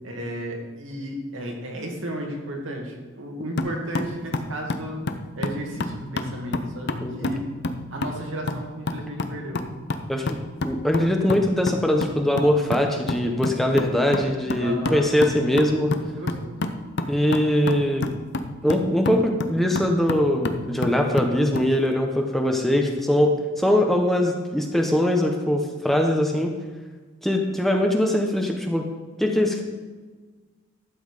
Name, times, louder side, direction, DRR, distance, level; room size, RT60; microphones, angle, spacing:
voice 1, 0.0-5.0 5.3-7.4 7.9-9.6 14.6-15.1 16.2-16.6, right 1 dB, 75° right, 0 dB, 2.2 m, -33 dB
sound 1, 3.6-21.7, left 2 dB, 55° left, 0.7 m, -30 dB
voice 2, 10.6-15.9 17.1-18.1 18.6-26.5 27.2-28.8 29.2-29.6, left 1 dB, ahead, 2 dB, 0.9 m, -22 dB
12.0 x 7.8 x 5.0 m, 1.4 s
head